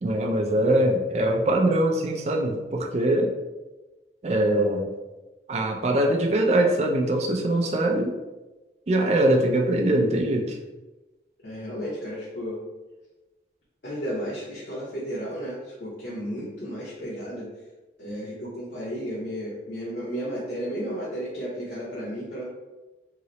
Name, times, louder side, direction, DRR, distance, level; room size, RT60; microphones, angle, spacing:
voice 1, 0.0-3.3 4.2-4.9 5.5-8.1 8.9-10.6, right 1 dB, 35° right, 2 dB, 0.4 m, -22 dB
voice 2, 11.4-12.6 13.8-17.5 18.0-22.5, equal, 70° left, -8 dB, 0.8 m, -33 dB
2.9 x 2.0 x 3.9 m, 1.1 s
head